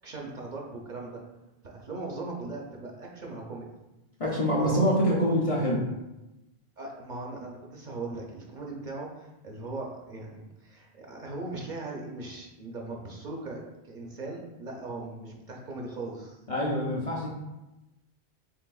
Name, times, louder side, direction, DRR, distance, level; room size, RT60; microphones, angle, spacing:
voice 1, 0.0-1.2 1.6-3.7 4.5-4.9 6.8-16.4, right 2 dB, 55° right, -1 dB, 0.7 m, -39 dB
voice 2, 4.2-5.9 16.5-17.3, equal, 45° left, -4 dB, 0.5 m, -25 dB
4.7 x 3.3 x 2.3 m, 0.99 s
omnidirectional pair, 1.1 m